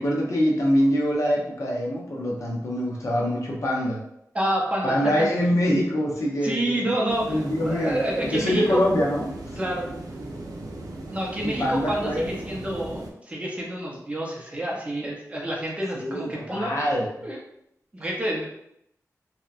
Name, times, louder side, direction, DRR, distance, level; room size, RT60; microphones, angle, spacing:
voice 1, 0.0-4.0 4.8-6.9 7.3-9.6 11.4-12.4 15.9-17.1, equal, 55° left, -3 dB, 0.7 m, -24 dB
voice 2, 4.3-5.3 6.4-8.8 9.6-9.9 11.1-16.9 17.2-17.4 17.9-18.5, right 1 dB, 20° right, -3 dB, 0.6 m, -28 dB
sound 1, 7.1-13.1, right 2 dB, 80° right, 0.4 m, -37 dB
2.8 x 2.1 x 2.4 m, 0.76 s
wide cardioid pair, 120°, 6 cm